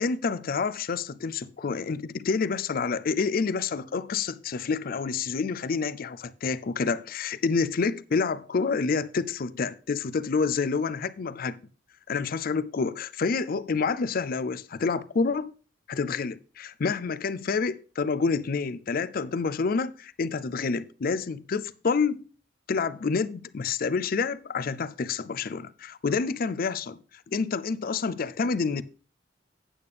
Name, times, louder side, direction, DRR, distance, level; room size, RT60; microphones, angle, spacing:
voice 1, 0.0-11.6 12.1-15.5 15.9-22.2 22.7-27.0 27.3-28.8, left 5 dB, 50° left, 0.4 m, -28 dB
8.6 x 8.5 x 3.4 m
head